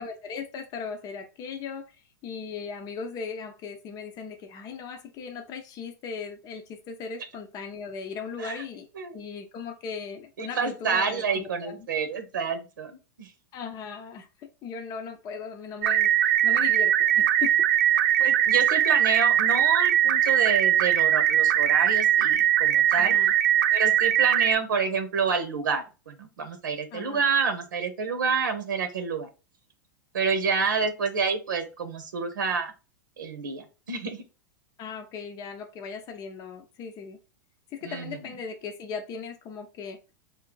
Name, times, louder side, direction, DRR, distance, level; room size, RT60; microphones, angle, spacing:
voice 1, 0.0-2.0 2.2-8.9 9.1-11.9 13.5-17.7 22.9-23.3 26.9-27.2 34.8-37.2 37.7-40.0, left 5 dB, 40° left, 5 dB, 0.6 m, -38 dB
voice 2, 10.4-13.3 18.2-23.2 23.7-29.3 30.1-32.7 33.2-34.2 37.8-38.3, right 5 dB, 85° right, 7 dB, 0.8 m, -28 dB
sound 1, 15.8-24.6, right 11 dB, 65° right, 0.4 m, -21 dB
3.7 x 2.7 x 3.7 m, 0.31 s
hypercardioid pair, 105°, 10 cm